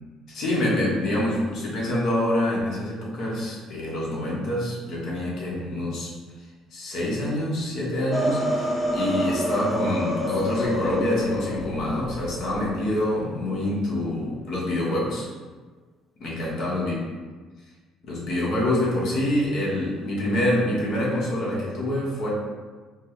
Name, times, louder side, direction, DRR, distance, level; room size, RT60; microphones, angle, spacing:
voice 1, 0.3-6.1 6.7-15.3 16.2-16.9 18.1-22.3, left 1 dB, 60° left, -5 dB, 1.2 m, -26 dB
sound 1, 8.1-13.0, equal, 15° left, 0.5 m, -28 dB
4.3 x 2.2 x 3.1 m, 1.4 s
cardioid pair, 115°, 0 cm